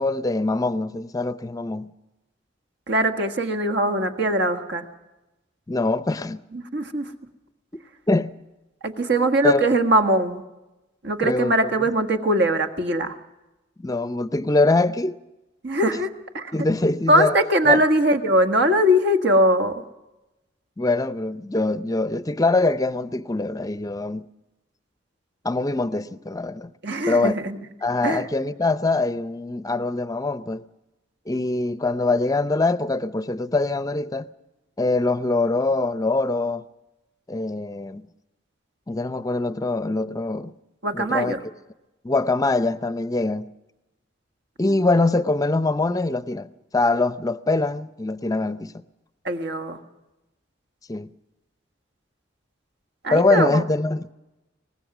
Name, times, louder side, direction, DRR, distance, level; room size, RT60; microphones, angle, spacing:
voice 1, 0.0-1.9 5.7-6.4 8.1-8.3 9.4-9.7 11.2-11.7 13.8-15.2 16.5-17.3 17.7-17.8 20.8-24.2 25.4-26.7 27.1-27.3 27.8-30.6 31.3-34.3 34.8-36.6 37.3-38.1 38.9-40.5 40.9-41.3 42.0-43.5 44.6-48.7 50.9-51.1 53.1-54.1, left 2 dB, 20° left, 0.6 m, -23 dB
voice 2, 2.9-4.9 6.5-7.1 8.8-10.4 11.0-13.2 15.6-16.5 17.1-19.8 26.8-27.6 28.0-28.3 40.8-41.4 49.2-49.8 53.0-53.6, right 1 dB, 60° right, 1.6 m, -21 dB
24.0 x 19.5 x 6.1 m
head